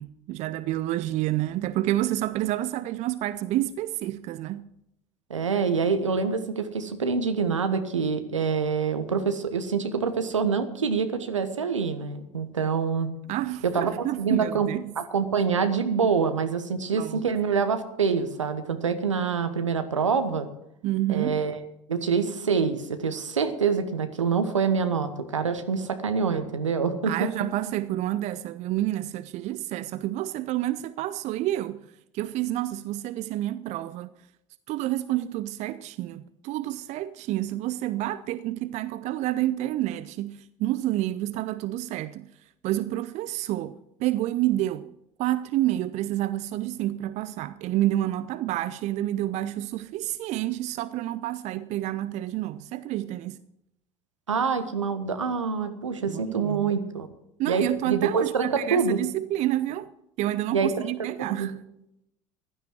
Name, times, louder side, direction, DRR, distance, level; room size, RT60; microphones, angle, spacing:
voice 1, 0.0-4.7 13.3-14.8 16.9-17.2 20.8-21.4 27.1-31.8 32.1-34.1 34.7-42.3 42.6-44.9 45.2-53.4 56.1-56.7 57.4-59.9 60.2-61.6, right 14 dB, 50° right, 0.6 m, -29 dB
voice 2, 5.3-13.1 13.6-14.7 15.0-20.5 21.1-21.6 21.9-27.3 54.3-57.1 57.5-59.0 60.5-60.9 61.3-61.5, right 5 dB, 85° right, 1.2 m, -26 dB
15.5 x 12.5 x 4.6 m
figure-of-eight pair, 60°, 16 cm